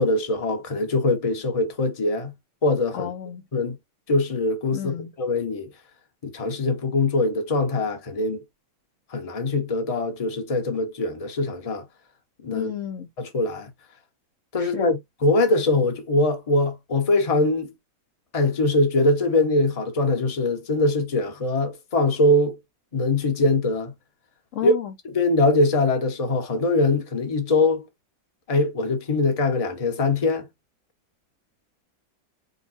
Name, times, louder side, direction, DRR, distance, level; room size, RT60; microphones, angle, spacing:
voice 1, 0.0-2.3 2.6-3.1 3.5-3.8 4.1-5.7 6.2-8.4 9.1-11.8 12.4-12.7 13.2-13.7 14.5-17.7 18.3-22.5 22.9-23.9 24.6-24.7 25.1-27.8 28.5-30.5, left 2 dB, 25° left, 0.8 m, -22 dB
voice 2, 2.9-3.4 4.7-5.1 12.5-13.1 14.6-14.9 24.5-24.9, left 9 dB, 60° left, 0.8 m, -31 dB
5.4 x 2.2 x 4.2 m
omnidirectional pair, 2.1 m